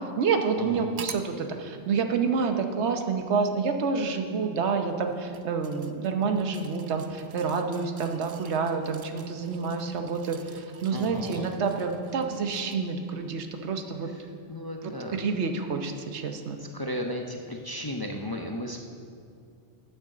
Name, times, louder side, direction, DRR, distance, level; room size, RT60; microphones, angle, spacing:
voice 1, 0.2-14.1 14.8-16.6, right 5 dB, 85° right, 5 dB, 1.1 m, -28 dB
sound 1, 1.0-1.3 2.4-2.5 4.9-13.0 13.4-13.5, right 6 dB, 55° right, 0.4 m, -46 dB
voice 2, 10.9-11.5 14.5-15.2 16.6-18.8, left 1 dB, 30° left, 1 dB, 0.5 m, -34 dB
9.1 x 6.3 x 7.6 m, 2.4 s
omnidirectional pair, 1.1 m